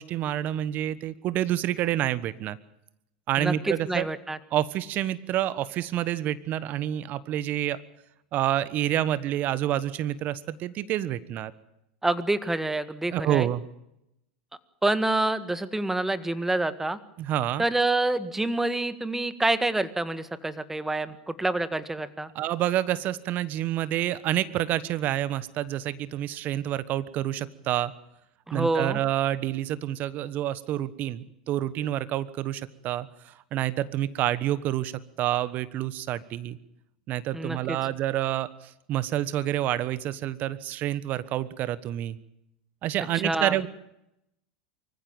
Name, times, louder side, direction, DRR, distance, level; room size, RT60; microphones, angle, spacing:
voice 1, 0.0-2.6 3.3-4.1 4.5-7.8 8.3-11.5 13.1-13.6 17.2-17.6 22.3-27.9 28.5-34.9 35.2-36.6 37.1-42.2 42.8-43.7, right 12 dB, 45° right, 17 dB, 1.2 m, -28 dB
voice 2, 3.4-4.4 12.0-13.5 14.8-17.0 17.6-22.3 28.5-29.0 37.3-37.8 43.2-43.5, right 2 dB, 10° right, 13 dB, 1.7 m, -27 dB
24.5 x 15.0 x 9.0 m, 0.84 s
hypercardioid pair, 95°, 4 cm